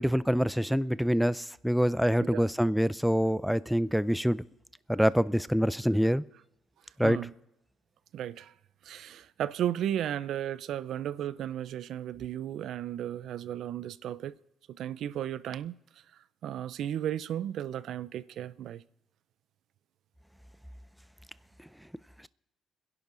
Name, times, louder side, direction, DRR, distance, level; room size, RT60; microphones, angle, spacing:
voice 1, 0.0-4.4 4.9-6.2 7.0-7.2, equal, ahead, 0.4 m, -26 dB
voice 2, 8.1-8.5 8.8-14.4 14.7-15.8 16.4-18.8, right 11 dB, 75° right, 0.5 m, -34 dB
28.5 x 11.0 x 3.9 m
cardioid pair, 90°, 0 cm